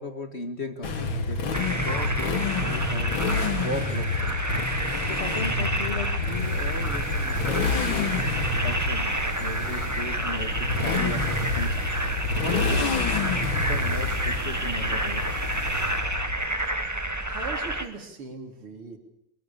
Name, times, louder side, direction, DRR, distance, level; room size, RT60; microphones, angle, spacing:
voice 1, 0.0-4.4 5.0-8.2 8.6-12.0 12.4-13.1 13.7-15.4, left 2 dB, 30° left, 7 dB, 1.9 m, -36 dB
Motorcycle, 0.8-16.6, left 4 dB, 65° left, 2.9 m, -29 dB
sound 1, 1.5-17.9, right 1 dB, 10° right, 1.6 m, -30 dB
sound 2, 6.3-16.1, right 1 dB, 35° right, 5.3 m, -36 dB
voice 2, 17.3-19.0, right 4 dB, 80° right, 4 dB, 4.4 m, -39 dB
23.0 x 22.0 x 7.0 m, 0.85 s
omnidirectional pair, 2.4 m